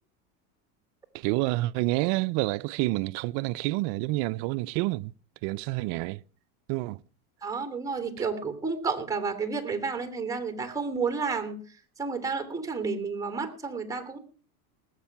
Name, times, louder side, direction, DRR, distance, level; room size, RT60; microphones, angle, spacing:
voice 1, 1.1-5.1 5.4-6.2 6.7-7.0, right 20 dB, 60° right, 0.6 m, -28 dB
voice 2, 7.4-11.6 12.0-14.2, right 4 dB, 5° right, 2.9 m, -31 dB
19.0 x 8.2 x 5.9 m
supercardioid pair, 115°, 44 cm